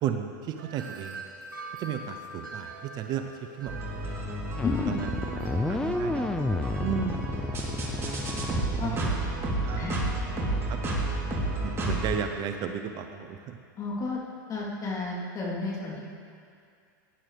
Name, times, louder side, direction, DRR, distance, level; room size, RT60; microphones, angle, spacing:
voice 1, 0.0-1.2 1.8-3.3 3.6-3.7 4.0-4.2 4.9-5.1 5.7-6.3 6.8-7.2 8.8-9.3 9.6-10.0 10.7-10.8 11.6-13.6, right 8 dB, 40° right, 6 dB, 0.8 m, -33 dB
Wind chime, 0.6-7.3, right 3 dB, 90° right, 1.7 m, -45 dB
sound 1, 3.7-12.2, right 1 dB, 25° right, 3.2 m, -31 dB
voice 2, 4.6-5.0 8.8-8.9 9.8-9.9 13.8-14.2 14.5-16.0, left 4 dB, 35° left, -4 dB, 3.3 m, -31 dB
sound 2, 4.6-9.4, left 2 dB, 5° left, 0.4 m, -31 dB
18.0 x 10.5 x 3.4 m, 2.3 s
hypercardioid pair, 110°, 11 cm